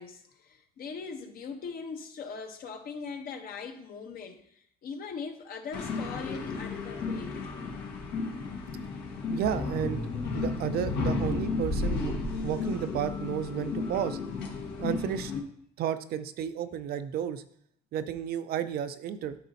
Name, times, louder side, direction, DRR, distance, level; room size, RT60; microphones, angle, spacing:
voice 1, 0.0-7.3, left 5 dB, 60° left, 1.0 m, -40 dB
sound 1, 5.7-15.4, left 3 dB, 80° left, 1.4 m, -33 dB
voice 2, 9.3-10.0 10.3-12.1 12.4-14.2 14.8-15.3 15.8-17.4 17.9-19.4, right 9 dB, 65° right, 0.5 m, -32 dB
12.0 x 4.1 x 2.8 m
cardioid pair, 110°, 17 cm